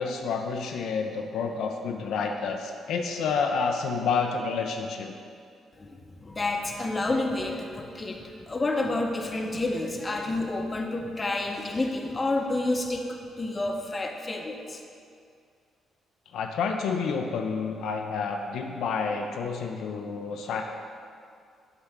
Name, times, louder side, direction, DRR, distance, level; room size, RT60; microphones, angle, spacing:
voice 1, 0.0-5.1 16.3-20.6, left 5 dB, 75° left, 3 dB, 0.5 m, -29 dB
voice 2, 5.8-14.8, left 2 dB, 25° left, 3 dB, 0.7 m, -29 dB
8.0 x 3.3 x 5.9 m, 2.3 s
cardioid pair, 90°, 0 cm